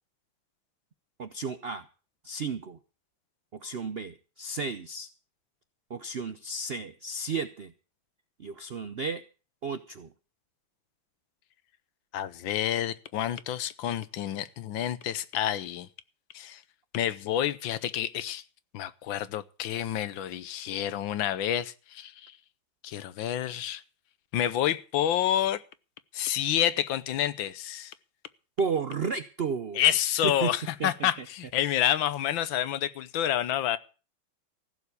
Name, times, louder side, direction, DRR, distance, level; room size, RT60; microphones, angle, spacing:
voice 1, 1.2-1.8 2.2-2.8 3.5-5.1 5.9-7.7 8.4-9.2 9.6-10.1 28.6-29.8 30.2-30.5 30.8-31.1, right 4 dB, 75° right, 0.5 m, -33 dB
voice 2, 12.1-15.9 16.3-16.6 16.9-18.4 18.7-22.1 22.8-23.8 24.3-25.6 26.1-27.9 29.7-33.8, left 11 dB, 80° left, 1.6 m, -28 dB
15.5 x 7.1 x 8.2 m
omnidirectional pair, 2.1 m